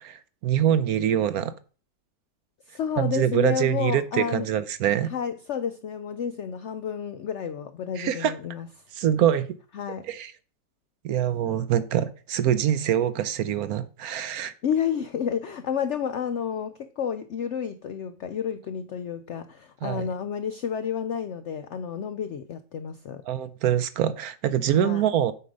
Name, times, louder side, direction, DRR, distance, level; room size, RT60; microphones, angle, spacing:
voice 1, 0.0-1.5 3.0-5.1 8.0-8.3 8.9-9.5 10.1-10.3 11.0-14.5 19.8-20.1 23.3-25.3, right 10 dB, 70° right, 1.0 m, -24 dB
voice 2, 2.7-4.5 5.1-8.7 9.7-10.1 14.6-23.2 24.7-25.1, left 7 dB, 75° left, 0.6 m, -30 dB
8.4 x 4.9 x 5.2 m
omnidirectional pair, 1.8 m